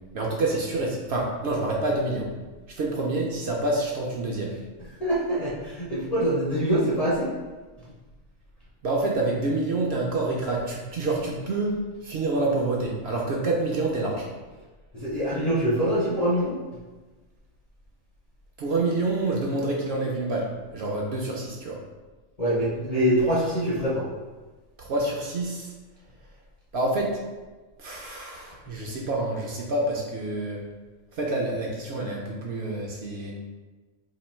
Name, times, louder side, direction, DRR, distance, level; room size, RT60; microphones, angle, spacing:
voice 1, 0.1-2.3 2.8-4.5 8.8-11.7 12.0-14.3 18.6-21.8 24.8-25.7 26.7-27.2 27.8-30.6 31.2-33.3, right 2 dB, 65° right, -2 dB, 0.7 m, -27 dB
voice 2, 5.0-7.3 14.9-16.6 22.4-24.1, equal, 40° left, -6 dB, 0.6 m, -24 dB
3.0 x 2.5 x 4.2 m, 1.2 s
omnidirectional pair, 1.4 m